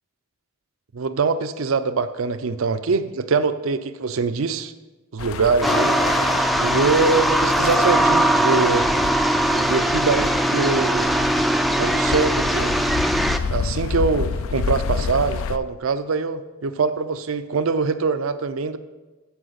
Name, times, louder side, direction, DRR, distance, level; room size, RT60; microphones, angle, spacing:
voice 1, 0.9-4.7 5.1-6.0 6.6-8.9 9.5-11.1 11.8-12.7 13.5-18.8, right 4 dB, 75° right, 12 dB, 0.5 m, -23 dB
sound 1, 5.2-15.6, left 5 dB, 75° left, 0.4 m, -29 dB
sound 2, 5.6-13.4, right 1 dB, ahead, 0.3 m, -20 dB
14.0 x 5.0 x 4.0 m, 1.2 s
head